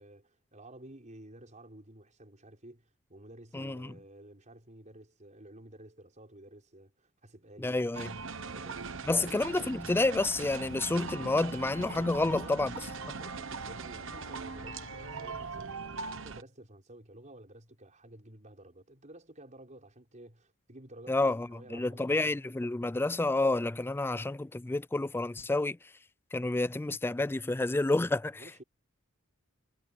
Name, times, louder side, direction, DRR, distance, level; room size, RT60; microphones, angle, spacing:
voice 1, 0.0-7.9 8.5-9.4 12.2-22.2 28.3-28.6, right 1 dB, 35° right, 5.5 m, -52 dB
voice 2, 3.5-3.9 7.6-8.1 9.1-12.7 21.1-25.8 26.3-28.4, left 2 dB, 10° left, 0.3 m, -29 dB
sound 1, 7.9-16.4, right 4 dB, 65° right, 1.1 m, -40 dB
Wind instrument woodwind instrument, 11.0-15.5, left 3 dB, 35° left, 4.4 m, -52 dB
head